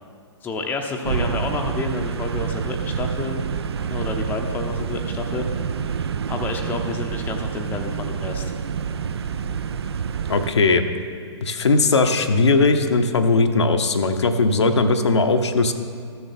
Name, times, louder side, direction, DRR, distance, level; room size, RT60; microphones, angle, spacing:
voice 1, 0.4-3.4 3.9-5.7 6.3-8.5, left 3 dB, 10° left, 3 dB, 0.6 m, -29 dB
sound 1, 1.0-10.5, right 7 dB, 60° right, 0.5 m, -27 dB
voice 2, 10.3-10.8 11.4-15.7, left 3 dB, 70° left, 6 dB, 0.8 m, -18 dB
13.0 x 6.9 x 4.2 m, 2.2 s
figure-of-eight pair, 115°, 15 cm